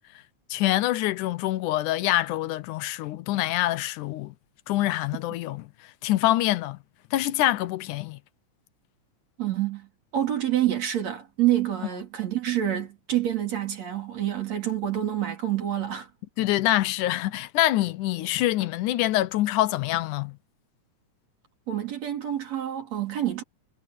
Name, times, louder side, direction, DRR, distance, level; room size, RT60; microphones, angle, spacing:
voice 1, 0.5-4.3 4.7-5.7 6.0-6.8 7.1-8.2 16.4-20.4, left 15 dB, 85° left, 2.3 m, -25 dB
voice 2, 9.4-16.1 21.7-23.4, right 12 dB, 60° right, 4.6 m, -27 dB
omnidirectional pair, 3.5 m